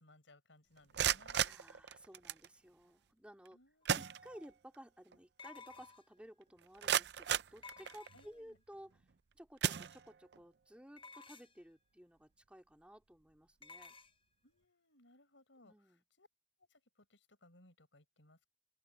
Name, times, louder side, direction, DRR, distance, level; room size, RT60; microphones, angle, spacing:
voice 1, 0.0-1.4 3.5-4.2 8.1-8.6 14.4-16.3 16.6-18.5, left 2 dB, 90° left, 6.1 m, -66 dB
sound 1, 0.8-2.5 3.5-3.6 3.9-4.8 5.1-5.2 5.8-5.9 6.4-8.3 8.9-9.1 9.6-10.4, right 9 dB, 60° right, 0.6 m, -36 dB
voice 2, 1.4-3.6 4.0-9.0 9.3-13.9 15.6-16.0, equal, 5° right, 3.2 m, -56 dB
sound 2, 3.8-3.9 5.4-6.2 7.6-8.5 11.0-11.7 13.6-14.1, left 4 dB, 30° left, 0.9 m, -55 dB
open air
head